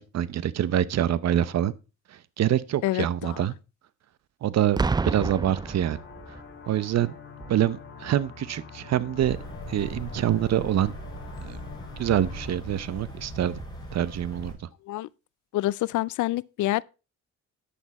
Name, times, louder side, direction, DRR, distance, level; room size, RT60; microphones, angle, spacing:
voice 1, 0.0-1.7 2.4-3.5 4.4-6.0 6.7-7.2 7.5-9.4 9.7-10.9 11.4-11.6 12.0-13.6 13.9-14.5, right 11 dB, 60° right, 0.8 m, -25 dB
voice 2, 2.8-3.4 14.9-15.1 15.5-16.8, left 16 dB, 75° left, 0.5 m, -27 dB
sound 1, 4.7-12.6, left 6 dB, 40° left, 2.6 m, -45 dB
Boom, 4.8-6.5 7.4-7.6, right 4 dB, 15° right, 0.4 m, -29 dB
sound 2, 9.1-14.5, right 1 dB, 15° left, 5.4 m, -39 dB
9.9 x 8.2 x 4.2 m
cardioid pair, 90°, 30 cm